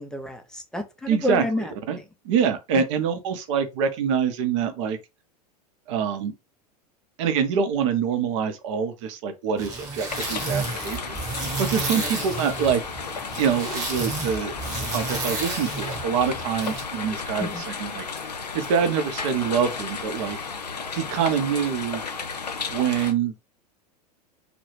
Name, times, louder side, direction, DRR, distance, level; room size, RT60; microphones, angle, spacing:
voice 1, 0.0-1.7 2.7-2.8 12.0-12.1 17.4-17.6, left 2 dB, 5° left, 0.4 m, -30 dB
voice 2, 1.1-1.4 1.9-2.0 2.2-5.0 5.9-6.3 7.2-12.8 13.4-14.5 14.9-18.0 18.5-20.4 20.9-22.0 22.7-23.3, right 7 dB, 50° right, 0.6 m, -25 dB
sound 1, 9.6-16.8, right 3 dB, 15° right, 0.9 m, -32 dB
sound 2, 10.1-23.1, left 5 dB, 80° left, 0.5 m, -33 dB
2.3 x 2.0 x 3.1 m
figure-of-eight pair, 85°, 21 cm